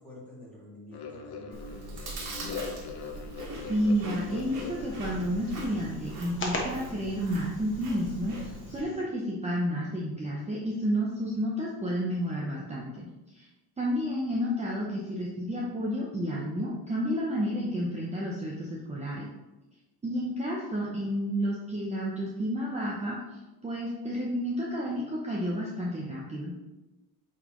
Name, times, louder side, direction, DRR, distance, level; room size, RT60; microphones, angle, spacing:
voice 1, 0.0-2.5, left 1 dB, 5° left, -7 dB, 2.0 m, -49 dB
sound 1, 0.9-6.0, left 5 dB, 80° left, 0.9 m, -41 dB
Chewing mastication, 1.5-8.8, right 2 dB, 85° right, 1.7 m, -42 dB
sound 2, 3.5-9.0, left 2 dB, 30° left, 1.1 m, -41 dB
voice 2, 3.7-13.1 13.3-13.5 13.8-19.3 20.0-26.5, equal, 20° right, -4 dB, 0.7 m, -31 dB
8.4 x 4.1 x 3.0 m, 1.1 s
cardioid pair, 160°, 37 cm